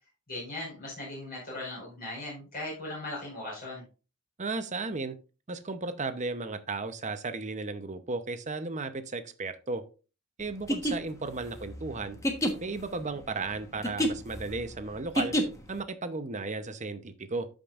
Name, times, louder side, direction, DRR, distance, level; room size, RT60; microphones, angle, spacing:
voice 1, 0.3-3.8, left 2 dB, 45° left, 4.8 m, -38 dB
voice 2, 4.4-5.2 5.5-9.8 10.4-12.2 12.6-15.3 15.7-17.5, right 3 dB, 35° right, 0.8 m, -35 dB
sound 1, 10.5-15.8, equal, 15° left, 1.2 m, -30 dB
13.0 x 5.2 x 2.5 m
head